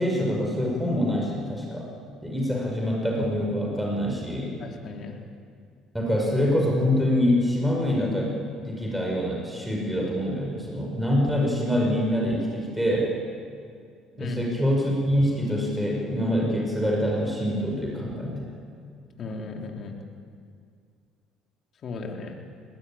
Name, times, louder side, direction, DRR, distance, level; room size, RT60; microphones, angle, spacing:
voice 1, 0.0-1.9 2.2-4.6 5.9-13.1 14.2-18.6, equal, 5° right, -2 dB, 6.0 m, -25 dB
voice 2, 4.6-5.2 14.1-14.4 19.2-19.9 21.8-22.4, left 3 dB, 50° left, 1 dB, 3.6 m, -35 dB
20.5 x 20.0 x 8.8 m, 2.2 s
supercardioid pair, 80°, 0 cm